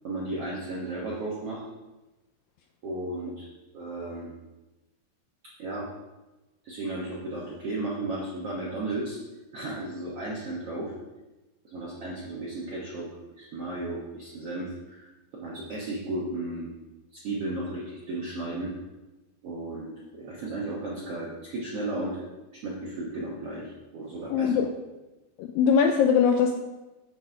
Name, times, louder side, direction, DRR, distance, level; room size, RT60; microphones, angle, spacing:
voice 1, 0.0-1.6 2.8-3.5 3.7-4.3 5.6-5.8 6.6-9.2 9.5-10.9 11.6-13.1 13.4-16.7 17.1-18.7 19.4-22.3 22.5-24.5, right 2 dB, 70° right, -5 dB, 1.4 m, -34 dB
voice 2, 24.3-24.7 25.4-26.6, left 6 dB, 85° left, 4 dB, 2.0 m, -21 dB
8.1 x 7.4 x 4.5 m, 1.1 s
omnidirectional pair, 4.6 m